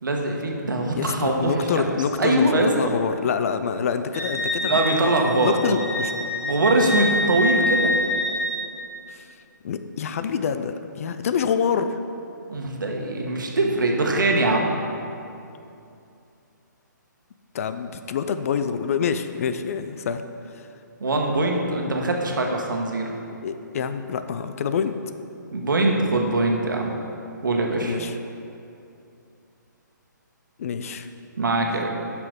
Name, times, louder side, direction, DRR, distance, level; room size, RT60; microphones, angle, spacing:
voice 1, 0.0-1.9 2.2-2.9 4.6-5.8 6.4-8.0 12.5-14.7 21.0-23.1 25.5-26.9 27.4-28.0 31.4-31.9, right 2 dB, 75° right, 1 dB, 1.4 m, -22 dB
voice 2, 0.9-5.1 5.4-6.1 9.1-9.3 9.6-12.0 17.5-20.7 23.4-25.0 27.8-28.2 30.6-31.1, left 7 dB, 45° left, 10 dB, 0.5 m, -27 dB
Wind instrument woodwind instrument, 4.1-8.6, left 1 dB, 15° left, 1.7 m, -26 dB
7.6 x 6.0 x 5.3 m, 2.6 s
hypercardioid pair, 145°, 11 cm